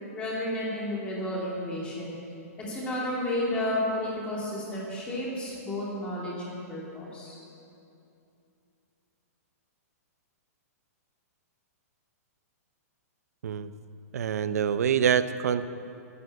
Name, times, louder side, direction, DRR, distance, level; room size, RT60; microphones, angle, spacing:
voice 1, 0.1-2.2 2.7-7.4, left 1 dB, 10° left, -5 dB, 2.9 m, -32 dB
voice 2, 14.1-15.6, right 8 dB, 70° right, 12 dB, 0.8 m, -25 dB
11.5 x 11.0 x 8.6 m, 2.7 s
hypercardioid pair, 170°, 9 cm